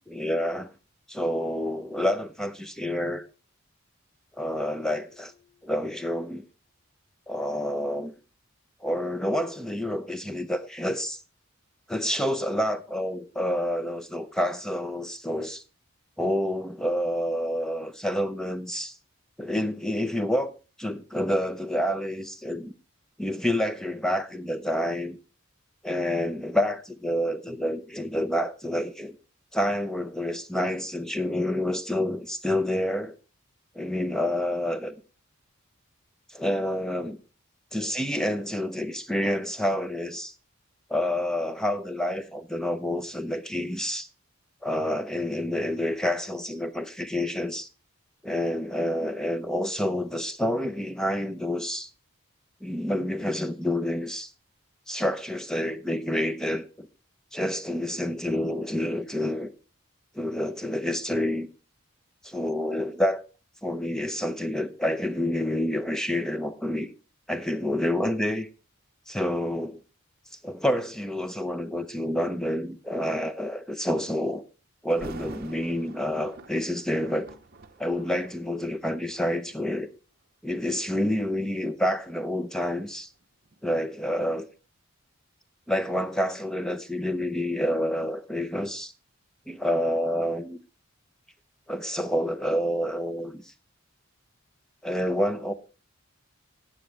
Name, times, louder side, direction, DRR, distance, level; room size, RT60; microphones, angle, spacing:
voice 1, 0.1-0.7 1.1-3.2 4.4-5.3 5.6-6.4 7.3-8.1 8.8-11.2 11.9-15.6 16.2-19.0 19.4-20.5 20.8-22.7 23.2-25.2 25.8-29.1 29.5-33.2 33.7-34.9 36.3-37.2 37.7-40.3 40.9-44.1 44.6-47.7 48.2-51.9 52.6-54.3 54.9-56.9 57.3-59.5 60.1-61.5 62.3-63.2 63.6-66.9 67.3-68.5 69.1-69.8 70.4-74.4 74.8-77.3 77.8-79.9 80.4-83.1 83.6-84.5 85.7-88.9 89.5-90.6 91.7-93.5 94.8-95.5, left 1 dB, 5° left, 0.6 m, -28 dB
sound 1, 4.6-6.3, left 7 dB, 70° left, 1.9 m, -57 dB
Thunder, 74.9-79.9 80.5-80.8 81.4-84.2 84.5-84.6, right 3 dB, 45° right, 0.8 m, -47 dB
12.5 x 8.9 x 3.3 m
head